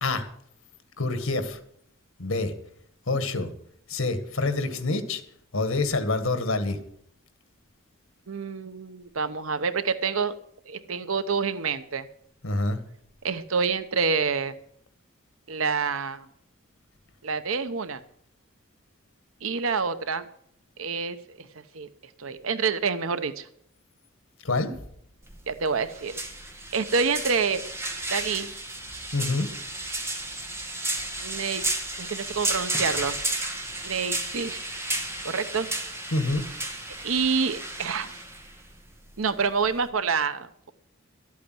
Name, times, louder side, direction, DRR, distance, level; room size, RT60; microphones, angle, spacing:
voice 1, 1.0-1.6 2.2-2.5 3.1-3.5 3.9-5.2 5.5-6.8 12.4-12.8 24.4-24.7 29.1-29.5 36.1-36.4, left 2 dB, 85° left, 10 dB, 1.7 m, -26 dB
voice 2, 8.3-10.3 10.7-12.1 13.2-14.5 15.5-16.3 17.2-18.0 19.4-20.3 20.8-21.5 21.7-21.9 22.2-23.5 25.5-26.2 26.7-27.6 28.1-28.5 31.2-31.6 32.0-33.1 33.8-34.6 35.2-35.7 37.0-38.2 39.2-40.7, right 5 dB, 80° right, 12 dB, 0.9 m, -27 dB
sound 1, 25.2-39.9, right 2 dB, 15° right, 2.1 m, -33 dB
13.0 x 8.4 x 7.7 m, 0.68 s
head